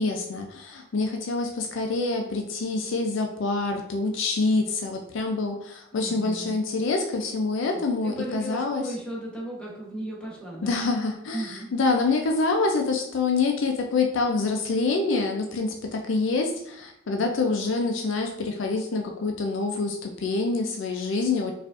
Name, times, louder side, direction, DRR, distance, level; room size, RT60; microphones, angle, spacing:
voice 1, 0.0-8.8 10.6-21.5, left 3 dB, 65° left, 3 dB, 0.4 m, -26 dB
voice 2, 5.9-6.6 7.7-10.8 11.3-11.7, right 1 dB, 5° left, -4 dB, 0.9 m, -36 dB
4.6 x 2.5 x 2.4 m, 0.75 s
head